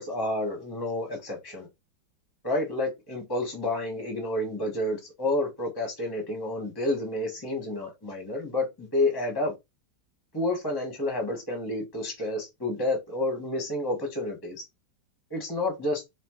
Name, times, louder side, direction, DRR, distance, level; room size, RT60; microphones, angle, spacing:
voice 1, 0.0-1.7 2.4-9.5 10.3-14.6 15.3-16.0, left 2 dB, 20° left, 0.7 m, -30 dB
4.2 x 3.0 x 3.0 m
omnidirectional pair, 2.1 m